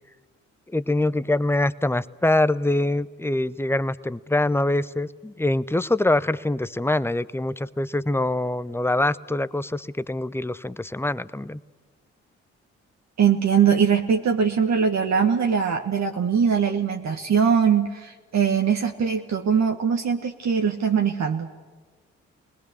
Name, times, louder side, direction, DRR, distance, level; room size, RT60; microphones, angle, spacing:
voice 1, 0.7-11.6, left 2 dB, 5° left, 16 dB, 0.8 m, -24 dB
voice 2, 13.2-21.5, right 7 dB, 55° right, 3 dB, 1.5 m, -21 dB
27.5 x 20.5 x 6.9 m, 1.3 s
hypercardioid pair, 40°, 33 cm